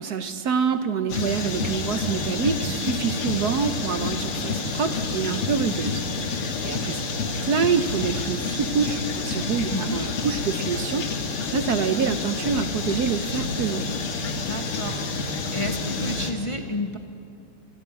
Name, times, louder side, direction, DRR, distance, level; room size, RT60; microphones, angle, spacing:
voice 1, 0.0-7.0 7.4-13.8, right 6 dB, 60° right, 10 dB, 1.1 m, -26 dB
sound 1, 1.1-16.3, left 3 dB, 85° left, 2.6 m, -28 dB
voice 2, 9.7-10.1 14.3-15.0 15.5-17.0, left 1 dB, 35° left, 5 dB, 0.5 m, -31 dB
27.0 x 14.5 x 9.0 m, 2.5 s
omnidirectional pair, 2.3 m